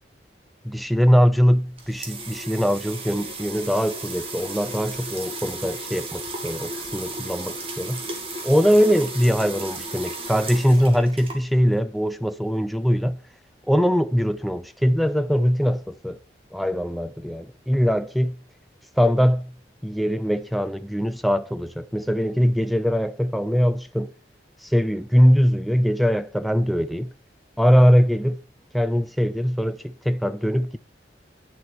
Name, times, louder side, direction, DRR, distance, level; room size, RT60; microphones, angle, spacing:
voice 1, 0.7-8.0 8.4-13.2 13.7-16.2 16.5-18.4 19.0-19.5 19.8-24.1 24.6-27.1 27.6-28.4 28.7-30.8, equal, ahead, 0.6 m, -21 dB
sound 1, 1.5-11.8, right 2 dB, 30° right, 2.3 m, -35 dB
10.0 x 7.6 x 6.2 m
head